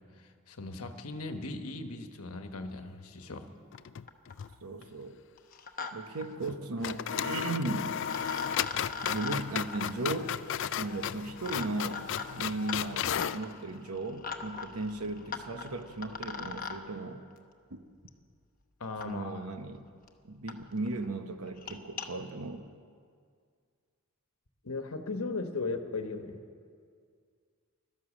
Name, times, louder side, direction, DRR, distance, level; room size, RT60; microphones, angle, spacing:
voice 1, 0.1-3.5 18.8-19.5 24.6-26.4, left 3 dB, 75° left, 6 dB, 1.2 m, -37 dB
sound 1, 3.7-4.5 4.8-4.9 6.4-6.6 6.8-13.4, left 9 dB, 55° left, 0.4 m, -34 dB
sound 2, 3.7-3.8 4.1-4.5 5.4-5.9 6.2-6.3 7.6-7.7 8.1-16.8 18.1-18.2 19.0-19.1 19.8-19.9 20.1-20.2 20.5-20.6 20.9-21.1 21.5-22.1, left 5 dB, 40° left, 0.9 m, -41 dB
voice 2, 4.6-5.2 5.9-7.9 9.1-10.3 10.8-12.1 12.4-17.2 17.7-17.8 19.0-19.9 20.2-22.7, right 2 dB, 80° right, 8 dB, 1.1 m, -36 dB
16.0 x 12.0 x 7.3 m, 2.1 s
head